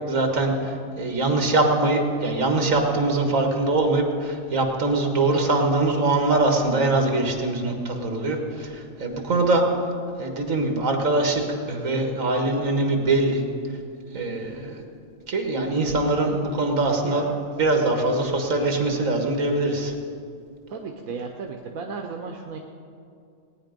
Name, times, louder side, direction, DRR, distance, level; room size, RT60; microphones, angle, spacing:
voice 1, 0.1-9.6 10.2-11.4 11.7-13.4 14.1-14.8 15.3-17.3 17.5-19.9, right 2 dB, 75° right, 3 dB, 2.0 m, -23 dB
voice 2, 17.0-17.3 20.7-22.6, right 4 dB, 90° right, 3 dB, 1.3 m, -34 dB
18.5 x 9.5 x 5.2 m, 2.4 s
omnidirectional pair, 1.4 m